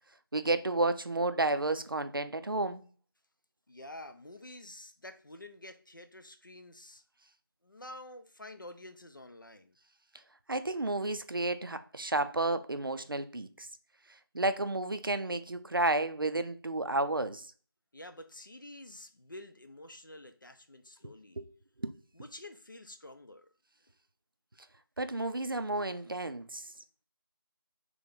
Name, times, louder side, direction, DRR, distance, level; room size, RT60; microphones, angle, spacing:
voice 1, 0.3-2.8 10.5-13.7 14.3-17.5 21.4-21.5 21.8-21.9 25.0-26.7, right 2 dB, 65° right, 0.4 m, -31 dB
voice 2, 3.7-7.0 7.6-9.7 17.9-21.4 22.1-23.5, left 1 dB, 55° left, 0.6 m, -49 dB
3.3 x 3.0 x 3.8 m
figure-of-eight pair, 175°, 13 cm